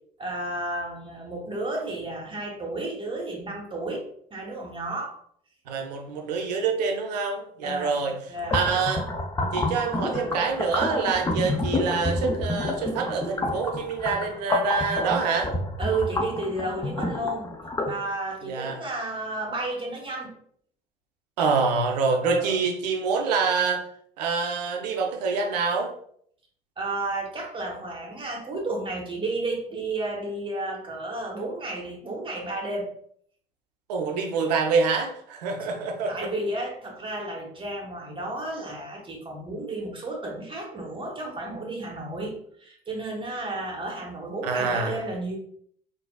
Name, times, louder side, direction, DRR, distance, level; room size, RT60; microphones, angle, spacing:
voice 1, 0.2-5.2 7.6-8.6 15.8-17.5 17.9-20.3 22.2-22.6 26.8-32.9 35.6-35.7 36.1-45.4, right 2 dB, 25° right, 1 dB, 1.1 m, -32 dB
voice 2, 5.7-8.2 8.5-9.1 9.5-15.5 18.5-18.8 21.4-23.8 24.2-25.9 33.9-36.1 44.4-45.0, right 5 dB, 80° right, 4 dB, 0.5 m, -26 dB
sound 1, 8.4-17.9, left 2 dB, 15° left, 0.6 m, -29 dB
3.9 x 2.6 x 2.3 m, 0.63 s
hypercardioid pair, 60°, 21 cm